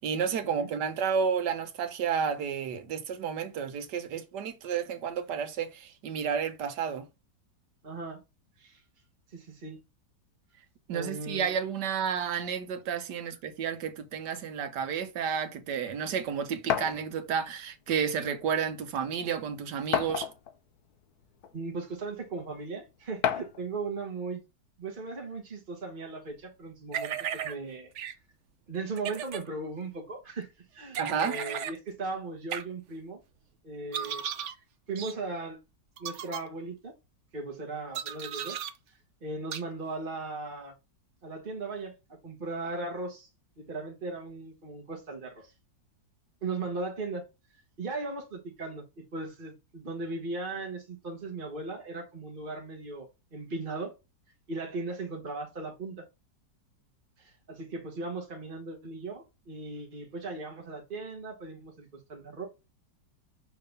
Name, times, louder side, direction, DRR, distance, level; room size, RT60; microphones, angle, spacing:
voice 1, 0.0-7.1 10.9-20.3 31.0-31.4, right 7 dB, 75° right, 1.5 m, -31 dB
voice 2, 7.8-8.2 8.6-8.8 9.3-9.8 10.9-11.5 21.5-24.4 24.8-27.9 28.7-33.2 33.6-34.2 34.9-35.6 36.0-36.9 37.3-38.6 38.9-40.7 41.2-41.9 42.2-43.3 43.6-45.5 46.4-47.2 47.8-48.8 49.1-53.9 54.5-56.0 57.2-62.5, right 3 dB, 35° right, 1.3 m, -37 dB
sound 1, 16.7-17.0 18.1-18.2 18.6-18.7 19.9-20.6 21.4-21.5 23.2-23.6, left 9 dB, 65° left, 1.2 m, -29 dB
sound 2, 26.9-27.5 28.0-28.1 29.0-29.4 30.9-31.8 32.5-32.6 33.9-34.5 35.0-35.1 36.0-36.4 37.9-38.7 39.5-39.6, right 9 dB, 60° right, 0.8 m, -35 dB
5.9 x 3.7 x 5.3 m
omnidirectional pair, 1.9 m